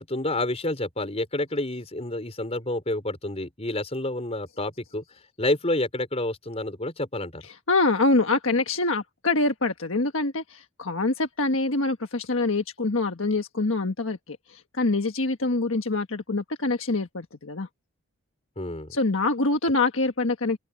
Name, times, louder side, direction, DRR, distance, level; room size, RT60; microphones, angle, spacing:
voice 1, 0.0-5.0 5.4-7.4 18.6-18.9, left 1 dB, 30° left, 4.8 m, -29 dB
voice 2, 7.7-17.7 18.9-20.6, left 2 dB, 65° left, 1.5 m, -25 dB
open air
head